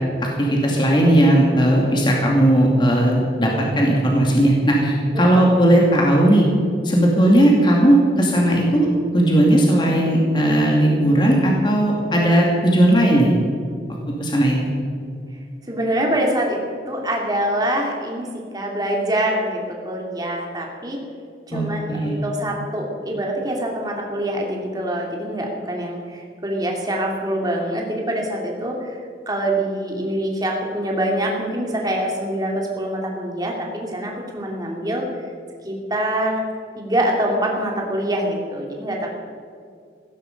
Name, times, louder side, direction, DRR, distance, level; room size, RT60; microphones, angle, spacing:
voice 1, 0.2-6.5 6.8-8.9 9.1-13.3 14.2-14.6 21.5-22.2, right 1 dB, 25° left, -1 dB, 2.5 m, -17 dB
voice 2, 15.7-16.6 16.9-18.3 18.5-21.0 21.5-29.0 29.3-35.0 35.6-36.4 36.8-39.1, right 1 dB, 20° right, 0 dB, 2.8 m, -24 dB
16.5 x 14.5 x 5.4 m, 2.3 s
head